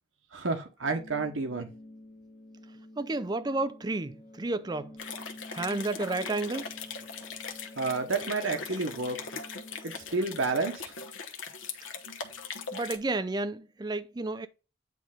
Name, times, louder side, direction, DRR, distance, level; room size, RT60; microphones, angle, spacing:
voice 1, 0.3-1.7 7.8-9.3 9.8-10.9, right 3 dB, 90° right, 1.2 m, -30 dB
sound 1, 0.8-10.8, left 1 dB, 50° left, 1.2 m, -50 dB
voice 2, 3.0-4.9 5.5-6.7 12.7-14.5, right 2 dB, 20° right, 0.4 m, -31 dB
sound 2, 5.0-13.0, left 5 dB, 85° left, 1.0 m, -40 dB
9.2 x 3.2 x 3.8 m
head